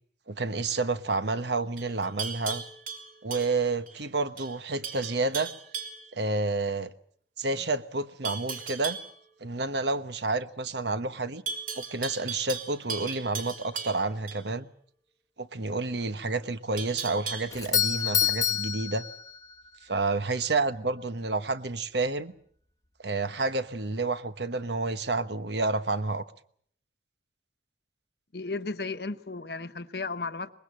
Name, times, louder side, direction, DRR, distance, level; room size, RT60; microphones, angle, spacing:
voice 1, 0.3-2.6 3.2-5.5 6.1-6.9 7.4-9.0 9.4-11.4 11.7-14.7 15.4-19.0 19.8-22.3 23.0-26.2, right 3 dB, 70° right, 1.2 m, -29 dB
Livestock farm animals working animals, 1.8-4.0 4.4-4.6 4.8-6.1 8.2-9.1 11.5-14.4 16.8-17.7, right 5 dB, 50° right, 3.5 m, -37 dB
Doorbell, 17.5-19.7, left 9 dB, 20° left, 1.1 m, -27 dB
voice 2, 28.3-30.5, left 3 dB, 60° left, 1.0 m, -34 dB
23.5 x 20.5 x 7.5 m
head